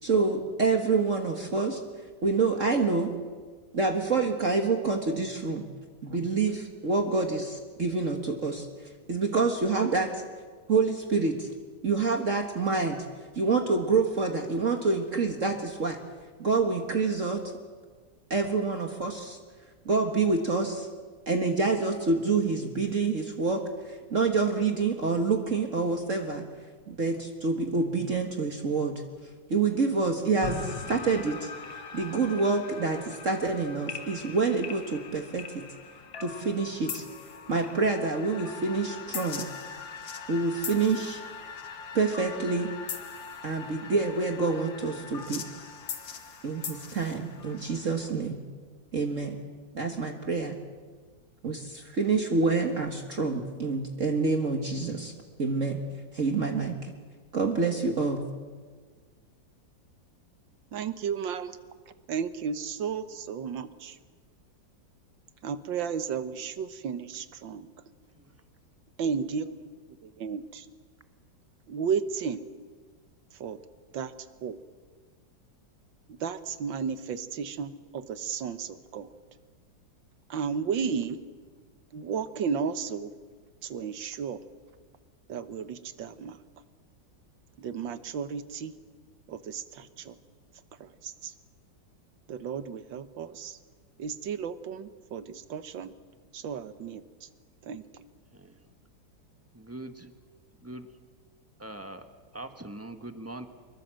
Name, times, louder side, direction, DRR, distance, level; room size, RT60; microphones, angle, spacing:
voice 1, 0.0-1.8 2.2-3.1 3.7-5.6 6.0-8.7 9.1-10.2 10.7-11.5 11.8-13.0 13.4-16.0 16.4-17.4 18.3-19.4 19.9-20.9 21.3-23.6 23.9-26.5 26.9-29.0 29.5-31.5 31.9-35.6 36.2-37.0 37.5-39.5 40.3-41.2 41.9-42.7 43.4-45.5 46.4-48.4 48.9-49.4 49.7-50.6 51.4-55.1 55.4-55.8 56.1-56.8 57.3-58.2, right 4 dB, 45° right, 4 dB, 1.8 m, -27 dB
sound 1, 30.4-48.1, left 6 dB, 85° left, 2.4 m, -41 dB
voice 2, 60.7-61.5 62.1-64.0 65.4-67.7 69.0-69.7 70.0-70.7 71.7-72.4 73.4-73.6 73.9-74.1 74.4-74.6 76.2-79.1 80.3-81.2 81.9-83.1 83.6-84.4 85.3-86.4 87.6-88.7 89.3-90.2 90.8-91.3 92.3-93.6 94.0-95.9 96.3-97.0 97.6-97.8, right 6 dB, 80° right, 12 dB, 1.8 m, -33 dB
voice 3, 99.5-100.1 100.6-100.9 101.6-102.1 102.3-103.5, right 1 dB, 10° right, 7 dB, 1.1 m, -42 dB
25.5 x 22.0 x 7.6 m, 1.5 s
omnidirectional pair, 2.0 m